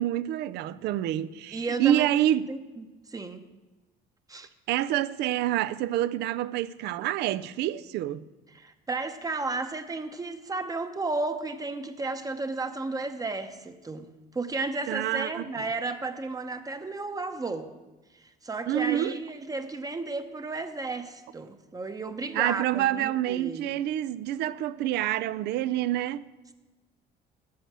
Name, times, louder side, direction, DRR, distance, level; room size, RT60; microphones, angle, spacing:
voice 1, 0.0-2.5 4.7-8.2 14.9-15.5 18.7-19.2 22.3-26.2, right 13 dB, 80° right, 0.5 m, -27 dB
voice 2, 1.5-2.1 2.5-3.5 4.3-4.5 8.5-17.7 18.1-23.7, right 3 dB, 20° right, 0.8 m, -33 dB
8.7 x 8.6 x 7.4 m
cardioid pair, 110°, 17 cm